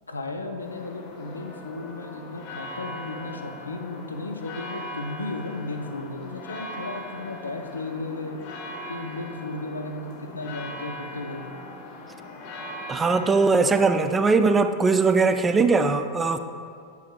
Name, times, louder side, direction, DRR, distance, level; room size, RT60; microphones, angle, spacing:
voice 1, 0.1-8.4 8.9-11.4, left 2 dB, 80° left, 4 dB, 0.6 m, -34 dB
sound 1, 0.6-14.1, left 1 dB, 45° left, 1.1 m, -40 dB
voice 2, 12.9-16.4, right 4 dB, 15° right, 9 dB, 0.3 m, -20 dB
8.3 x 8.1 x 2.4 m, 2.3 s
figure-of-eight pair, 90°, 0 cm